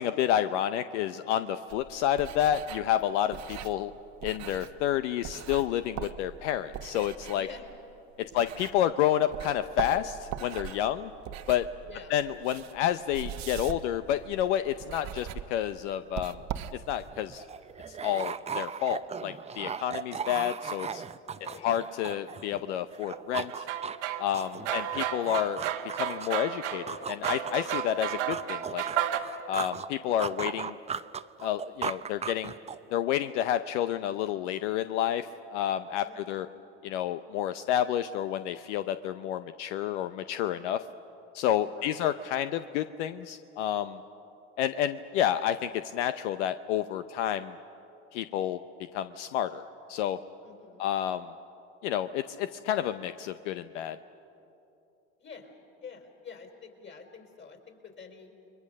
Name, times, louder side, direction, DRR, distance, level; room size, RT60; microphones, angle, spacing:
voice 1, 0.0-3.9 4.2-7.5 8.3-11.1 11.5-11.6 12.1-16.4 16.9-17.4 17.9-21.0 21.6-23.7 24.2-25.6 26.0-28.8 29.5-30.8 31.4-32.5 32.9-36.5 36.8-40.8 41.3-44.0 44.6-47.6 48.1-48.6 48.9-50.2 50.8-51.3 51.8-54.0, left 11 dB, 80° left, 11 dB, 0.7 m, -30 dB
sound 1, 1.7-9.0 9.3-17.2, right 10 dB, 50° right, 1.1 m, -41 dB
voice 2, 10.7-11.1 11.8-12.1 21.2-21.7 24.5-24.9 36.0-36.5 41.7-42.0 50.4-50.8 55.2-55.5 55.8-58.3, left 6 dB, 30° left, 4 dB, 4.1 m, -48 dB
sound 2, 16.8-16.9 17.1-22.6 22.9-26.4 26.9-29.9 30.2-32.9, right 6 dB, 20° right, 0.6 m, -37 dB
sound 3, 23.0-29.2, right 11 dB, 85° right, 1.5 m, -33 dB
29.0 x 22.5 x 6.5 m, 2.9 s
hypercardioid pair, 85°, 35 cm